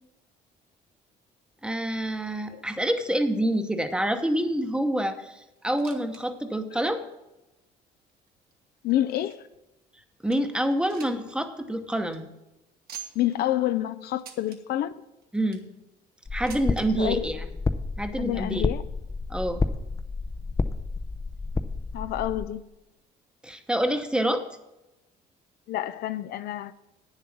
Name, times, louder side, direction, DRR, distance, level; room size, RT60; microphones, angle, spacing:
voice 1, 1.6-7.0 10.2-12.3 15.3-15.6 16.3-17.5 18.0-18.6 19.3-19.6 23.4-24.4, right 1 dB, 5° right, 0.9 m, -27 dB
sound 1, 5.6-6.2 6.5-6.6 7.3-7.4 8.1-9.6 10.0-10.1 10.3-11.3 11.6-11.7 12.0-12.2 12.9-13.4 14.2-14.6 15.2-15.7 16.5-16.9 17.8-17.9 18.1-18.2 19.0-19.1, right 9 dB, 65° right, 1.5 m, -45 dB
voice 2, 8.8-9.4 13.2-14.9 17.0-17.2 18.2-18.8 21.9-22.6 25.7-26.7, left 13 dB, 70° left, 0.5 m, -28 dB
sound 2, 16.3-22.5, left 3 dB, 20° left, 0.5 m, -30 dB
9.3 x 7.3 x 5.9 m
cardioid pair, 110°, 17 cm